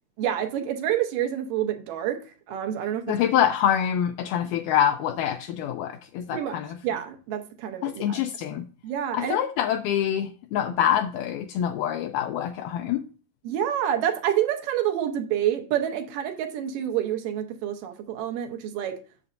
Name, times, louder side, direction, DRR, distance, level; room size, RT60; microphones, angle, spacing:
voice 1, 0.2-2.2 2.5-3.0 6.3-6.6 6.8-8.2 8.8-9.4 13.4-19.0, right 10 dB, 75° right, 6 dB, 2.4 m, -28 dB
voice 2, 3.1-6.8 7.8-8.7 9.1-13.0, left 10 dB, 80° left, 5 dB, 1.9 m, -25 dB
8.8 x 6.9 x 2.5 m, 0.37 s
omnidirectional pair, 4.1 m